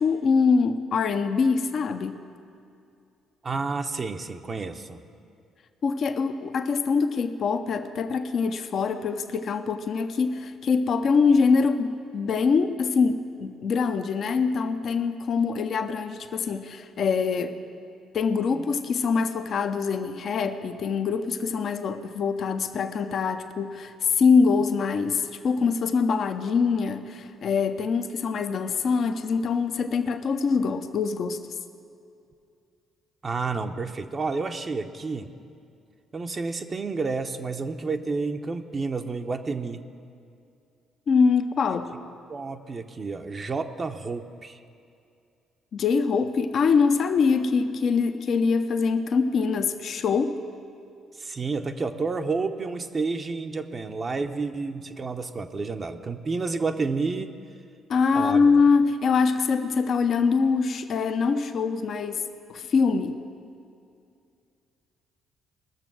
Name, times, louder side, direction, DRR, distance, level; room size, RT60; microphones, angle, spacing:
voice 1, 0.0-2.2 5.8-17.6 18.1-31.4 41.1-41.9 45.7-50.4 57.9-63.2, left 5 dB, 55° left, 8 dB, 0.7 m, -24 dB
voice 2, 3.4-5.0 18.5-18.6 33.2-35.3 36.1-39.8 41.7-41.8 42.3-44.6 51.2-57.4 58.1-58.4, right 4 dB, 40° right, 5 dB, 0.7 m, -30 dB
19.5 x 6.8 x 6.1 m, 2.5 s
hypercardioid pair, 50°, 0 cm